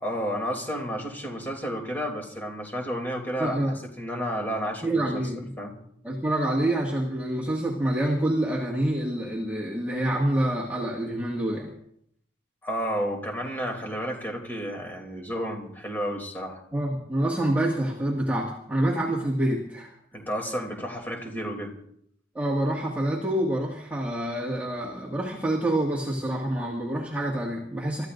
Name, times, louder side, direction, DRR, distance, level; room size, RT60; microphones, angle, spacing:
voice 1, 0.0-5.8 12.6-16.6 20.1-21.7, equal, 10° left, 0 dB, 2.9 m, -31 dB
voice 2, 4.8-5.5 6.0-11.7 16.7-19.9 22.3-28.1, right 1 dB, 10° right, -5 dB, 1.9 m, -27 dB
29.0 x 14.0 x 2.6 m, 0.69 s
head